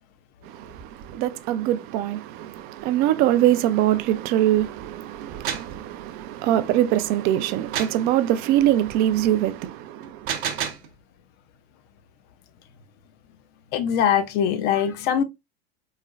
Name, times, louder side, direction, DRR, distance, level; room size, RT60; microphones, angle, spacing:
voice 1, 0.4-10.6, right 12 dB, 30° right, 0.4 m, -23 dB
sound 1, 5.2-5.8 7.7-8.0 10.0-10.9, right 8 dB, 55° right, 0.8 m, -29 dB
voice 2, 13.7-15.2, left 8 dB, 35° left, 0.4 m, -22 dB
3.7 x 3.1 x 2.2 m
figure-of-eight pair, 85°, 31 cm